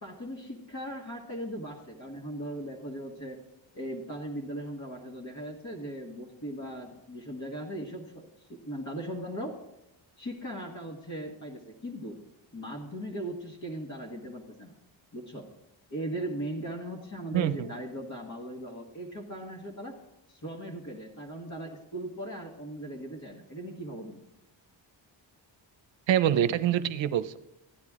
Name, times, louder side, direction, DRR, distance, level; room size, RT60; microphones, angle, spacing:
voice 1, 0.0-3.4 3.7-9.6 10.2-12.2 12.5-14.7 15.1-15.5 15.9-20.0 20.3-24.2, right 1 dB, 35° left, -2 dB, 1.7 m, -38 dB
voice 2, 26.1-27.4, right 10 dB, 70° right, 13 dB, 0.7 m, -25 dB
14.5 x 9.7 x 3.7 m, 0.87 s
cardioid pair, 90°, 47 cm